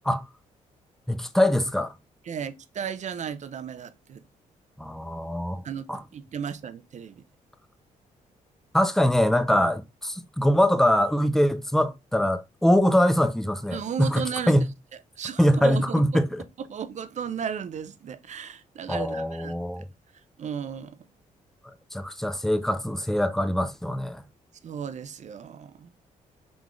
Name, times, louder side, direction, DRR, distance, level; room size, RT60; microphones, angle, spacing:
voice 1, 1.1-1.9 4.8-5.6 5.9-6.0 8.7-14.7 15.4-16.4 18.9-19.8 21.9-24.2, equal, ahead, 0.6 m, -23 dB
voice 2, 2.3-4.2 5.6-7.2 13.7-14.7 15.2-16.2 16.6-19.7 20.4-21.0 24.6-25.9, right 7 dB, 50° right, 0.5 m, -35 dB
3.9 x 3.5 x 3.1 m
supercardioid pair, 60°, 15 cm